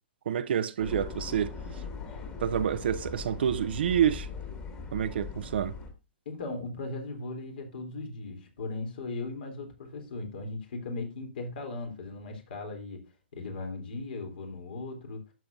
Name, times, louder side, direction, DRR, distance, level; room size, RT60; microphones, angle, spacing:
voice 1, 0.3-1.5 2.4-4.3 4.9-5.7, right 9 dB, 65° right, 0.6 m, -28 dB
sound 1, 0.8-5.9, left 4 dB, 20° left, 2.3 m, -40 dB
voice 2, 6.3-13.0 13.3-15.2, left 3 dB, 60° left, 3.6 m, -38 dB
12.0 x 7.5 x 2.7 m
hypercardioid pair, 140°, 6 cm